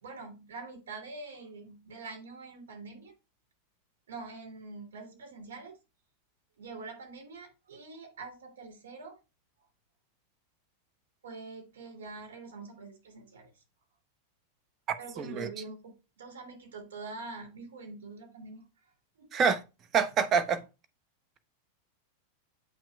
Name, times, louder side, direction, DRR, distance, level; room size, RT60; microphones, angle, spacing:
voice 1, 0.0-3.2 4.1-5.8 6.6-9.2 11.2-13.6 15.0-18.9 19.2-19.3, right 3 dB, 65° right, 2.9 m, -45 dB
voice 2, 14.9-15.5 19.3-19.6 19.9-20.6, right 6 dB, 30° right, 0.9 m, -27 dB
8.6 x 6.0 x 2.4 m
figure-of-eight pair, 90°, 0 cm